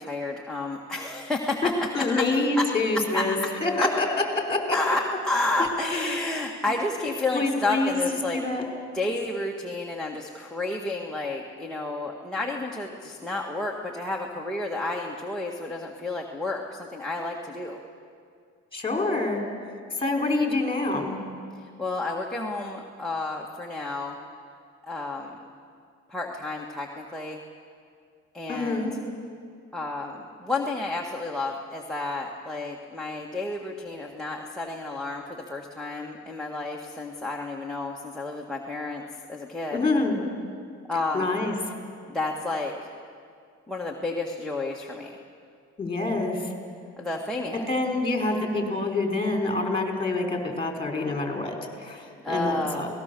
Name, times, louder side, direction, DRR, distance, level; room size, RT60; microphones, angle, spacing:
voice 1, 0.0-1.7 2.2-2.3 2.6-2.7 3.1-3.5 3.8-3.9 4.7-8.4 8.9-17.8 21.5-24.2 24.9-25.4 26.1-27.4 28.3-28.9 29.7-39.8 40.9-41.3 42.1-42.8 43.7-45.2 47.0-47.7 52.2-52.9, left 2 dB, ahead, 2 dB, 1.7 m, -31 dB
voice 2, 1.9-4.1 4.4-4.8 5.9-6.2 7.3-8.0 8.3-8.6 18.7-19.4 20.0-21.2 28.5-28.9 39.7-40.2 41.1-41.5 45.8-46.4 47.7-52.9, left 2 dB, 20° left, 2 dB, 4.1 m, -26 dB
27.0 x 19.0 x 6.9 m, 2.3 s
cardioid pair, 110°, 29 cm